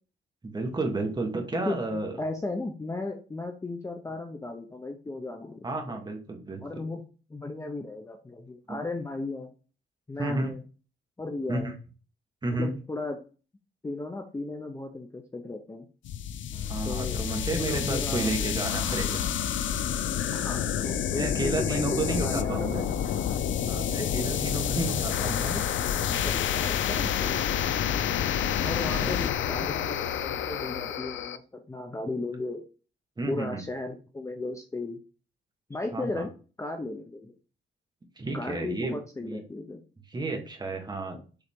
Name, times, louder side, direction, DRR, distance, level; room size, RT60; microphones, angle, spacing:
voice 1, 0.4-2.1 5.6-6.6 8.7-8.8 10.2-10.5 11.5-11.7 12.4-12.7 16.7-19.3 21.1-22.8 23.7-25.6 28.7-28.8 29.0-29.1 33.2-33.6 35.9-36.3 38.2-38.9 39.2-39.4 40.1-41.2, right 2 dB, 20° right, 3 dB, 1.5 m, -31 dB
voice 2, 1.5-6.0 6.6-7.0 7.3-9.5 10.1-10.6 11.2-11.7 12.5-13.2 13.8-15.9 16.8-17.2 17.5-18.4 20.3-22.8 23.9-24.7 25.3-27.4 28.6-32.6 33.3-35.0 35.7-36.3 36.6-37.3 38.3-39.8, left 2 dB, 15° left, 4 dB, 0.7 m, -36 dB
sound 1, 16.0-31.4, left 9 dB, 90° left, 0.5 m, -29 dB
sound 2, 16.5-23.5, left 3 dB, 40° left, 1.5 m, -48 dB
6.9 x 3.9 x 3.7 m, 0.36 s
cardioid pair, 140°, 19 cm